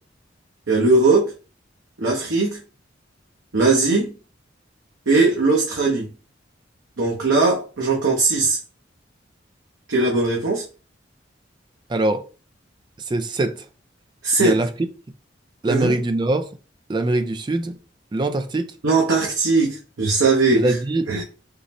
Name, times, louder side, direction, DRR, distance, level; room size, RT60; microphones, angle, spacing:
voice 1, 0.7-1.3 2.0-2.6 3.5-4.1 5.1-6.1 7.0-8.6 9.9-10.6 14.2-14.6 15.7-16.0 18.8-20.7 21.1-21.2, right 3 dB, 85° right, 0.8 m, -19 dB
voice 2, 11.9-12.2 13.1-13.7 14.4-14.7 15.6-16.5 16.9-17.8 18.1-18.7 20.5-21.2, right 2 dB, 25° right, 0.3 m, -22 dB
3.7 x 2.0 x 4.1 m
head